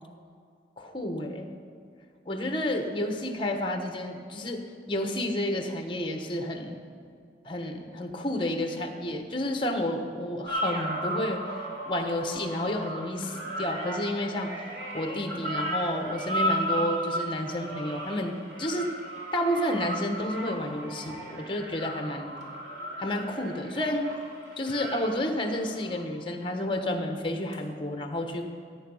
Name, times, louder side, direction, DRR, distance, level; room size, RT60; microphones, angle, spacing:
voice 1, 0.8-1.5 2.2-6.8 7.4-11.4 11.9-14.5 14.9-18.9 19.3-22.3 23.0-24.1 24.6-28.5, left 1 dB, 25° left, 5 dB, 1.2 m, -30 dB
sound 1, 10.5-26.0 27.5-27.6, right 1 dB, 80° right, 2.7 m, -35 dB
15.5 x 8.9 x 5.5 m, 2.3 s
head